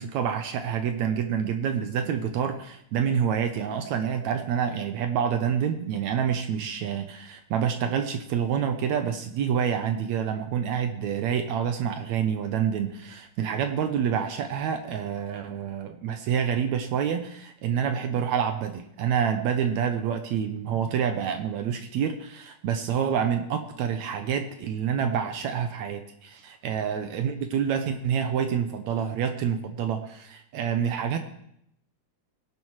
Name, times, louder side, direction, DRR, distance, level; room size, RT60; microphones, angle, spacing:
voice 1, 0.0-31.2, right 8 dB, 75° right, 7 dB, 1.9 m, -27 dB
19.0 x 10.5 x 3.1 m, 0.75 s
omnidirectional pair, 3.6 m